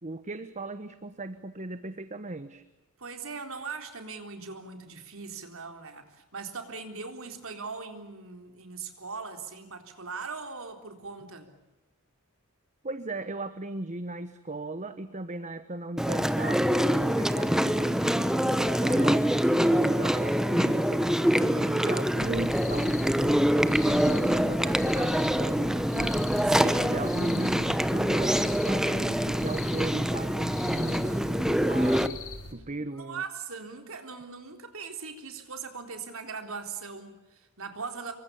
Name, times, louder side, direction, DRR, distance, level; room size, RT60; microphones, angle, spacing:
voice 1, 0.0-2.6 12.8-21.1 21.4-26.2 26.5-32.2 32.5-33.2, right 2 dB, 35° right, 11 dB, 1.1 m, -37 dB
voice 2, 3.0-11.5 21.5-21.9 26.5-26.9 32.9-38.1, right 5 dB, 65° right, 6 dB, 3.8 m, -40 dB
Chewing mastication, 16.0-32.1, equal, 5° right, 1.0 m, -25 dB
sound 1, 22.2-32.5, left 2 dB, 75° left, 4.3 m, -42 dB
27.0 x 24.0 x 7.0 m, 1.0 s
head